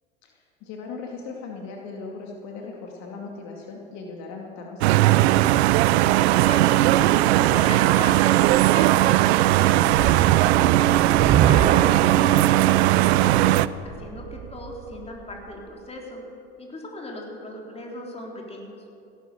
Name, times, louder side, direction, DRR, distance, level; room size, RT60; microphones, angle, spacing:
voice 1, 0.2-5.3, left 4 dB, 55° left, 0 dB, 2.3 m, -38 dB
sound 1, 4.8-13.7, right 15 dB, 75° right, 0.5 m, -18 dB
voice 2, 6.3-10.4 11.2-16.2 16.6-18.7, left 1 dB, 20° left, 0 dB, 3.6 m, -37 dB
sound 2, 9.9-15.2, right 10 dB, 25° right, 0.5 m, -25 dB
16.0 x 11.5 x 6.9 m, 2.7 s
hypercardioid pair, 90°, 33 cm